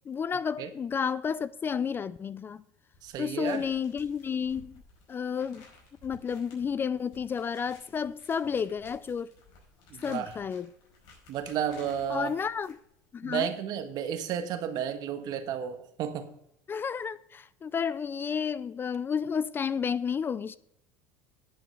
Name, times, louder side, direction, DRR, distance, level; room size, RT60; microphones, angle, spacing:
voice 1, 0.1-2.6 3.2-4.8 5.1-5.6 6.0-9.3 10.0-10.7 12.1-12.8 13.1-13.5 16.7-20.6, left 6 dB, 25° left, 0.4 m, -31 dB
sound 1, 2.9-13.1, left 3 dB, 60° left, 5.0 m, -56 dB
voice 2, 3.0-3.6 9.9-10.4 11.3-12.3 13.2-16.3, right 9 dB, 55° right, 1.4 m, -32 dB
10.5 x 6.0 x 6.6 m
supercardioid pair, 105°, 8 cm